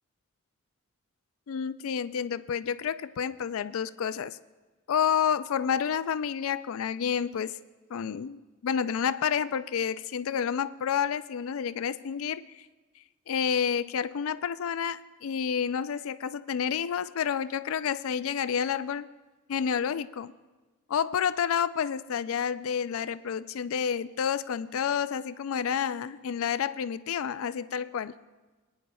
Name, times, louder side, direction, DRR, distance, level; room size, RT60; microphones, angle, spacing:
voice 1, 1.5-4.4 4.9-7.6 7.9-12.5 13.3-19.1 19.5-20.3 20.9-28.1, left 7 dB, 70° left, 14 dB, 0.4 m, -29 dB
25.0 x 9.7 x 2.3 m, 1.2 s
head